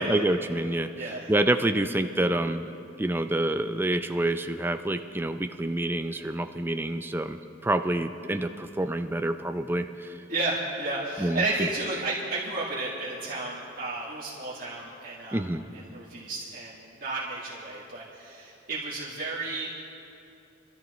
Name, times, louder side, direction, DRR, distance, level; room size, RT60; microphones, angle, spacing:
voice 1, 0.0-2.7 3.0-10.2 11.2-11.7 15.3-15.6, right 1 dB, 10° right, 7 dB, 0.4 m, -27 dB
voice 2, 0.9-1.3 10.3-15.4 15.9-19.7, right 2 dB, 45° right, -8 dB, 2.0 m, -32 dB
25.5 x 13.0 x 3.1 m, 2.7 s
head